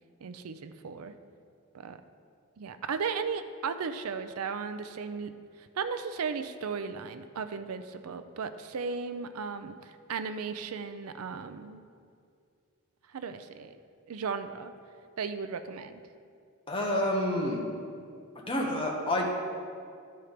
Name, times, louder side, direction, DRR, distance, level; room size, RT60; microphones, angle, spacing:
voice 1, 0.2-1.1 1.7-2.0 2.6-5.3 5.6-11.8 13.1-13.8 14.1-14.7 15.2-16.0, right 5 dB, 80° right, 10 dB, 0.5 m, -36 dB
voice 2, 16.7-17.6 18.5-19.3, left 1 dB, 25° left, -1 dB, 1.1 m, -28 dB
11.0 x 4.5 x 5.0 m, 2.3 s
head